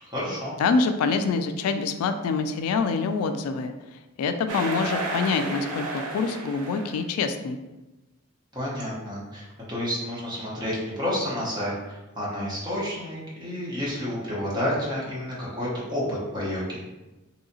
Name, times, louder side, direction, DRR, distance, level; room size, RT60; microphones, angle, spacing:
voice 1, 0.0-0.6 8.5-16.8, left 1 dB, 20° right, -7 dB, 1.0 m, -30 dB
voice 2, 0.6-3.7 4.2-7.6, left 4 dB, 90° left, 12 dB, 0.3 m, -25 dB
sound 1, 4.5-7.0, right 2 dB, 90° right, 0.6 m, -32 dB
3.1 x 2.7 x 2.7 m, 1.1 s
head